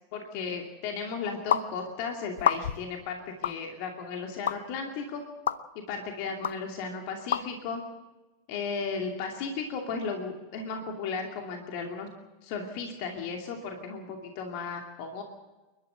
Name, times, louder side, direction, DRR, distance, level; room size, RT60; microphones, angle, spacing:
voice 1, 0.1-5.2 5.9-7.8 8.5-12.1 12.4-15.2, left 5 dB, 50° left, 2 dB, 2.6 m, -35 dB
sound 1, 1.5-1.7 2.4-2.9 3.4-3.6 4.5-4.6 5.5-5.6 6.4-6.5 7.3-7.4, left 9 dB, 65° left, 0.8 m, -26 dB
29.5 x 12.5 x 7.9 m, 1.2 s
figure-of-eight pair, 85°, 0 cm